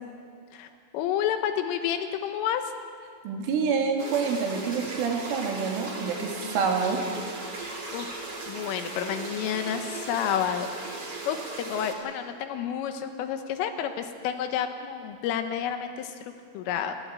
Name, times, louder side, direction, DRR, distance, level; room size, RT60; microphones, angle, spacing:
voice 1, 0.5-2.7 7.6-10.7 11.3-16.9, left 9 dB, 85° left, 7 dB, 3.8 m, -30 dB
voice 2, 3.2-7.0, right 5 dB, 80° right, 1 dB, 4.9 m, -27 dB
sound 1, 4.0-11.9, right 3 dB, 30° right, 2.5 m, -37 dB
27.5 x 12.0 x 8.9 m, 2.1 s
omnidirectional pair, 5.6 m